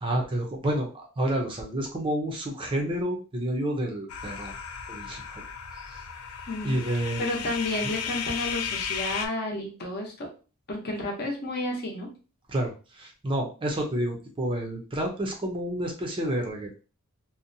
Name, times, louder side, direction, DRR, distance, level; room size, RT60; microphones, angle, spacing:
voice 1, 0.0-4.5 4.9-5.4 5.8-6.0 6.6-7.4 12.5-16.8, right 1 dB, 25° right, 1 dB, 0.5 m, -30 dB
sound 1, 4.1-9.3, left 7 dB, 80° left, 0.4 m, -35 dB
voice 2, 6.5-6.8 7.2-10.3 10.7-12.1, left 1 dB, 45° left, 1 dB, 0.8 m, -31 dB
2.6 x 2.1 x 2.6 m, 0.34 s
head